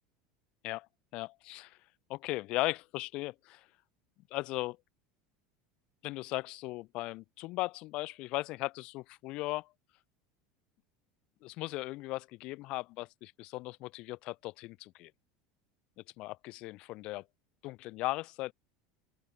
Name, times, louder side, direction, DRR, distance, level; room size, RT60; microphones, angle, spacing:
voice 1, 1.1-1.8 2.1-3.6 4.3-4.8 6.0-9.7 11.4-15.1 16.2-17.2 17.6-18.5, left 20 dB, 40° left, 2.1 m, -37 dB
open air
cardioid pair, 180°, 2 cm